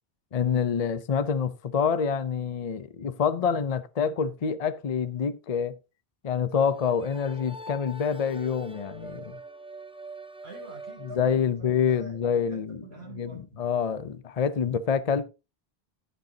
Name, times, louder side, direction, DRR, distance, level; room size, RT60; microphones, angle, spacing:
voice 1, 0.3-5.8 6.2-9.4 11.2-12.8 13.2-15.2, left 7 dB, 45° left, 0.6 m, -27 dB
sound 1, 6.6-11.6, right 1 dB, 10° right, 0.3 m, -44 dB
voice 2, 10.4-12.2 12.5-13.6, right 2 dB, 75° right, 4.0 m, -46 dB
15.0 x 6.7 x 2.8 m
omnidirectional pair, 1.1 m